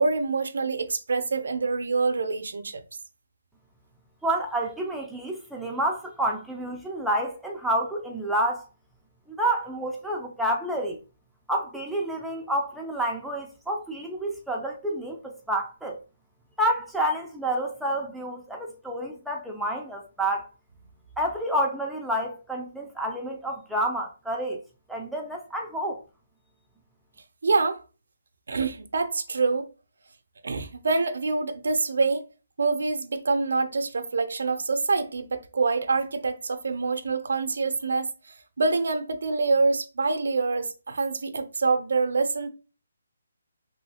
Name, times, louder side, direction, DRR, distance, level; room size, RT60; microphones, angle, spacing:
voice 1, 0.0-2.8 27.4-27.8 28.5-29.7 30.4-32.2 32.6-38.1 38.6-42.5, right 4 dB, 70° right, 0.4 m, -26 dB
voice 2, 4.2-8.6 9.3-11.0 11.5-16.0 16.6-20.5 21.2-24.6 24.9-26.0, right 1 dB, ahead, 0.3 m, -29 dB
3.0 x 2.7 x 2.7 m
hypercardioid pair, 160°, 0 cm